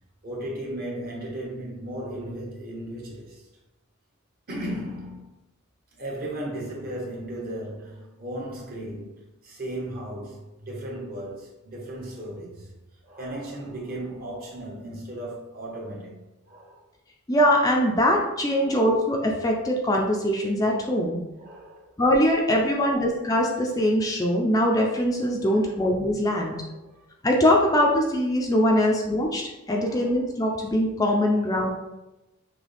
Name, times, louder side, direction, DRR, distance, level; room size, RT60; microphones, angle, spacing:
voice 1, 0.2-3.4 4.5-5.2 5.9-12.7 13.0-16.2 16.5-16.8 18.6-18.8 21.4-21.9 22.3-22.8 25.4-25.8 26.4-27.1 28.7-28.9 29.8-30.1 31.3-31.5, right 1 dB, 45° right, -3 dB, 1.3 m, -36 dB
voice 2, 17.3-21.2 22.0-26.6 27.2-29.4 29.7-31.7, equal, 15° left, 0 dB, 0.5 m, -22 dB
6.1 x 2.3 x 3.4 m, 0.97 s
head